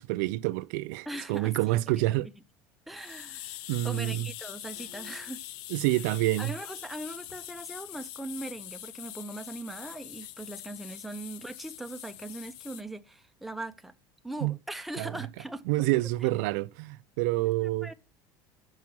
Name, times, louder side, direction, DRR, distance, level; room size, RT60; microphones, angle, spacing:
voice 1, 0.0-2.3 3.7-4.3 5.7-6.5 14.4-14.6 15.0-15.2 15.7-17.9, right 18 dB, 75° right, 0.4 m, -28 dB
voice 2, 1.1-1.8 2.2-2.3 2.9-3.6 3.8-5.4 6.4-13.9 14.2-15.9 17.4-17.9, right 2 dB, ahead, 0.4 m, -40 dB
sound 1, 3.0-12.8, left 15 dB, 65° left, 0.4 m, -43 dB
sound 2, 4.7-5.8, left 4 dB, 20° left, 4.0 m, -57 dB
6.2 x 5.9 x 6.1 m
cardioid pair, 150°, 9 cm